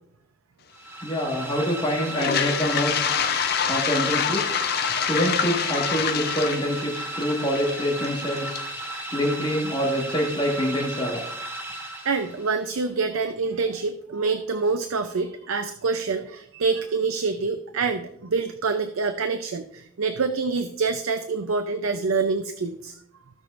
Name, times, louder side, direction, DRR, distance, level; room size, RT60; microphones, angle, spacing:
sound 1, 0.7-12.6, right 2 dB, 10° right, 0.9 m, -35 dB
voice 1, 1.0-3.0 3.7-4.4 5.0-8.6 9.1-11.2, equal, 20° left, -3 dB, 1.6 m, -26 dB
Toilet flush, 2.1-10.0, left 8 dB, 50° left, 0.5 m, -27 dB
voice 2, 12.0-22.9, right 4 dB, 85° right, 9 dB, 0.6 m, -26 dB
16.0 x 6.2 x 2.5 m, 0.75 s
head